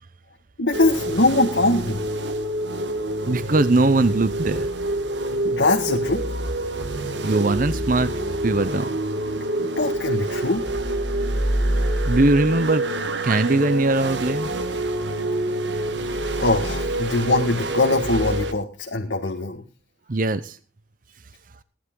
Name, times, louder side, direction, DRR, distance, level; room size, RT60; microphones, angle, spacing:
voice 1, 0.6-2.0 5.4-6.2 9.6-10.6 16.4-19.6, left 2 dB, 80° left, 1 dB, 1.9 m, -22 dB
sound 1, 0.7-18.5, right 1 dB, 75° right, 1.6 m, -26 dB
voice 2, 3.3-4.7 7.2-8.1 8.4-8.9 12.0-12.8 13.2-14.5 20.1-20.6, right 2 dB, 45° right, 14 dB, 0.7 m, -20 dB
18.0 x 11.5 x 3.8 m, 0.36 s
head